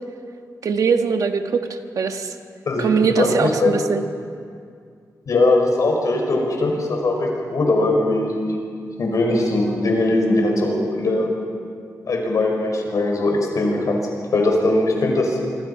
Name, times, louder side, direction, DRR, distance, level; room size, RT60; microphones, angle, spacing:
voice 1, 0.6-2.3 2.8-4.0, right 5 dB, 65° right, 6 dB, 1.4 m, -21 dB
voice 2, 2.7-3.8 5.3-8.5 9.0-11.3 12.1-14.0 14.3-15.4, left 2 dB, 60° left, 1 dB, 5.4 m, -20 dB
26.0 x 25.0 x 5.7 m, 2.3 s
wide cardioid pair, 150°, 6 cm